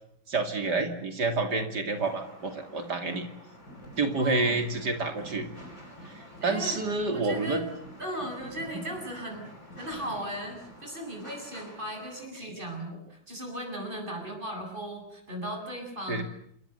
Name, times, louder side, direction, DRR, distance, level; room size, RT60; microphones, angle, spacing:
voice 1, 0.3-3.3 4.0-5.5 6.0-7.7 12.4-12.5 16.1-16.2, right 3 dB, 65° right, 6 dB, 3.1 m, -29 dB
sound 1, 2.0-12.3, left 1 dB, 15° left, 8.2 m, -51 dB
sound 2, 3.5-10.8, right 1 dB, 60° left, 7.3 m, -49 dB
voice 2, 4.2-4.6 6.4-6.8 7.1-7.6 8.0-9.5 9.8-16.2, equal, 25° right, 2 dB, 8.3 m, -37 dB
28.5 x 22.0 x 8.2 m, 0.72 s
omnidirectional pair, 2.0 m